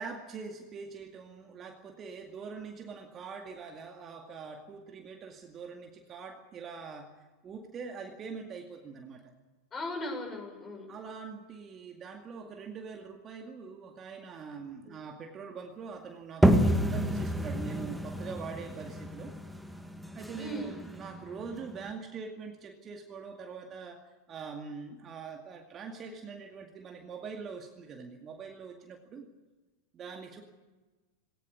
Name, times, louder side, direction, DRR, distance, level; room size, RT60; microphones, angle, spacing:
voice 1, 0.0-7.1 7.4-9.3 10.9-19.3 20.1-29.3 29.9-30.4, right 5 dB, 25° right, 4 dB, 2.2 m, -43 dB
voice 2, 9.7-10.9 14.8-15.0 20.4-20.8, left 1 dB, 20° left, 3 dB, 6.7 m, -38 dB
sound 1, 16.4-21.9, equal, 5° right, 1.7 m, -29 dB
19.5 x 18.5 x 9.7 m, 1.2 s
figure-of-eight pair, 90°, 0 cm